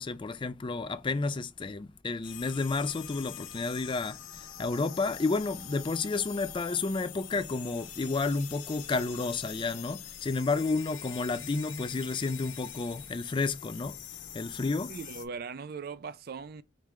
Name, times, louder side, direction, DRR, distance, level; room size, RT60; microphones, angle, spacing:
voice 1, 0.0-14.0 14.3-14.9, left 3 dB, 25° left, 0.3 m, -31 dB
sound 1, 2.2-15.2, left 10 dB, 90° left, 0.9 m, -44 dB
voice 2, 14.9-16.6, right 5 dB, 50° right, 0.4 m, -39 dB
5.2 x 3.2 x 3.1 m
head